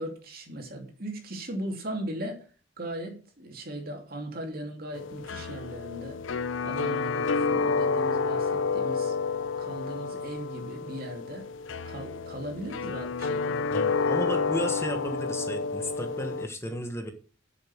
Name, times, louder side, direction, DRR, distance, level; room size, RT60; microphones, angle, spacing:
voice 1, 0.0-2.5 2.8-6.2 6.6-9.1 9.6-11.5 11.8-13.8, right 1 dB, 50° right, 2.9 m, -38 dB
sound 1, 4.9-16.5, left 4 dB, 90° left, 0.6 m, -29 dB
voice 2, 13.7-17.1, equal, 15° left, 1.2 m, -33 dB
9.3 x 7.1 x 6.2 m
head